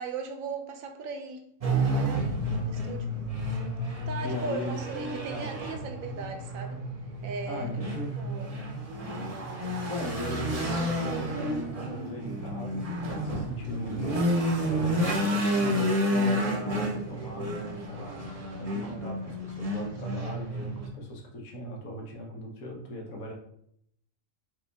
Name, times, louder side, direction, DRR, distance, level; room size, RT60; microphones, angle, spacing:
voice 1, 0.0-2.4 2.7-3.1 4.1-6.8 7.2-7.7 8.2-8.5, right 4 dB, 75° right, 4 dB, 1.0 m, -37 dB
sound 1, 1.6-20.9, equal, 35° right, 0.6 m, -30 dB
voice 2, 4.2-4.8 5.3-5.6 7.5-8.2 9.9-18.2 18.6-23.3, equal, 85° left, 0 dB, 1.4 m, -39 dB
4.7 x 2.4 x 3.4 m, 0.71 s
omnidirectional pair, 1.4 m